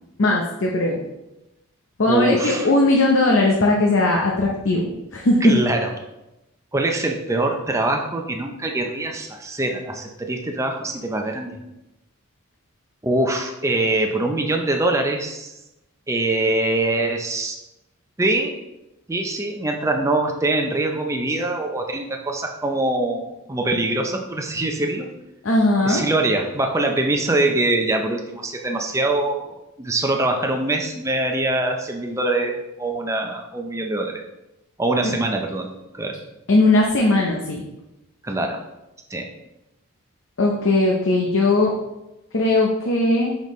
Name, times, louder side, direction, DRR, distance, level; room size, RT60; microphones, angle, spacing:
voice 1, 0.2-1.0 2.0-5.5 25.4-26.0 35.0-35.1 36.5-37.6 40.4-41.7 42.3-43.4, left 2 dB, 60° left, -1 dB, 0.7 m, -18 dB
voice 2, 2.1-2.7 5.4-5.9 6.7-11.6 13.0-15.5 16.1-17.6 18.2-18.6 19.1-25.1 25.8-34.2 34.8-36.2 38.2-38.6 39.1-39.3, right 2 dB, 15° right, 2 dB, 0.5 m, -23 dB
6.1 x 5.2 x 3.1 m, 0.95 s
head